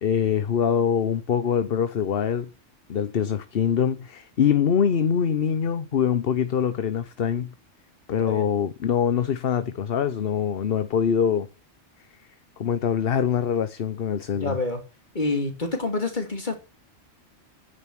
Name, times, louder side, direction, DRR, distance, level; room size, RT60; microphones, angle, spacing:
voice 1, 0.0-2.5 2.9-7.5 8.1-11.5 12.6-14.6, left 8 dB, 55° left, 1.0 m, -24 dB
voice 2, 14.3-14.8 15.1-16.5, left 3 dB, 40° left, 2.8 m, -27 dB
9.6 x 9.3 x 6.2 m
omnidirectional pair, 1.2 m